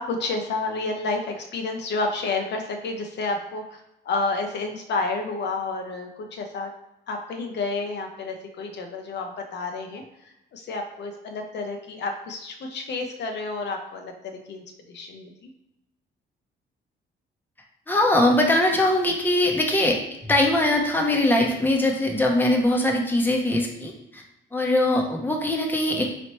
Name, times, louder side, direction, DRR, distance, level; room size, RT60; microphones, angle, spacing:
voice 1, 0.0-6.7 7.1-15.5, left 3 dB, 60° left, 3 dB, 0.6 m, -30 dB
voice 2, 17.9-20.0 20.3-24.2 24.5-26.1, left 1 dB, 10° left, 1 dB, 0.7 m, -21 dB
4.0 x 3.1 x 3.0 m, 0.87 s
cardioid pair, 90°, 20 cm